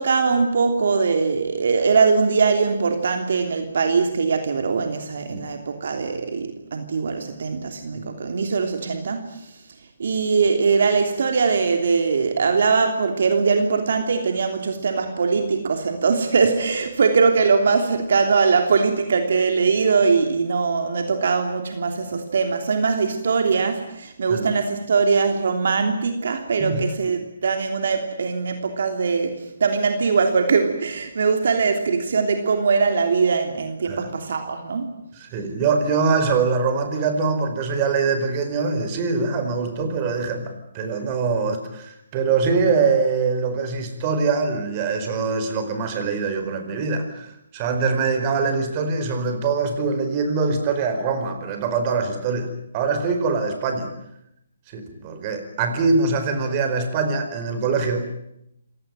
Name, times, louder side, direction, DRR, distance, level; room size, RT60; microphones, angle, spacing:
voice 1, 0.0-9.3 10.0-34.9, right 5 dB, 65° right, 6 dB, 3.1 m, -21 dB
voice 2, 26.6-26.9 33.9-34.1 35.1-53.9 54.7-58.1, right 4 dB, 30° right, 7 dB, 4.8 m, -23 dB
27.5 x 18.0 x 9.2 m, 0.80 s
hypercardioid pair, 150°, 0 cm